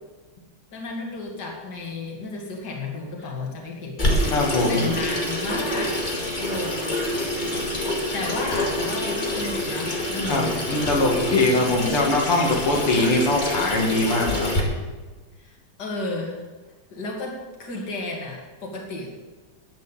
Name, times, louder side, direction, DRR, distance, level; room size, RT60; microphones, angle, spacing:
voice 1, 0.7-4.0 4.7-6.0 6.4-7.0 8.1-10.6 15.4-15.5 15.8-16.4 16.9-17.3 17.6-19.1, left 3 dB, 50° left, 0 dB, 2.8 m, -32 dB
Water tap faucet / Sink (filling or washing), 4.0-14.6, left 1 dB, 20° left, 2.1 m, -26 dB
voice 2, 4.3-4.8 10.3-14.5, left 2 dB, 80° left, -2 dB, 3.1 m, -22 dB
11.5 x 9.3 x 7.3 m, 1.3 s
omnidirectional pair, 2.4 m